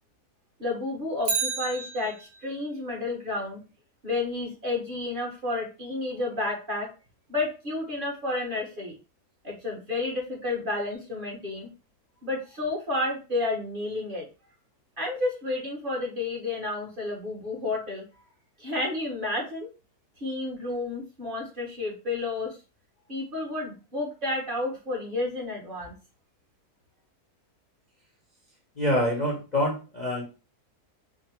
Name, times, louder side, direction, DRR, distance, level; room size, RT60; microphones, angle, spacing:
voice 1, 0.6-3.6 4.0-6.9 7.3-8.9 9.4-11.7 12.2-14.2 15.0-18.0 18.6-19.7 20.2-22.6 23.1-25.9, left 2 dB, 35° right, -2 dB, 1.3 m, -31 dB
Bicycle, 1.2-2.6 10.9-11.0, right 5 dB, 85° right, 1.5 m, -31 dB
voice 2, 28.7-30.2, left 1 dB, 35° left, -2 dB, 0.8 m, -26 dB
3.8 x 2.1 x 4.3 m, 0.32 s
omnidirectional pair, 1.7 m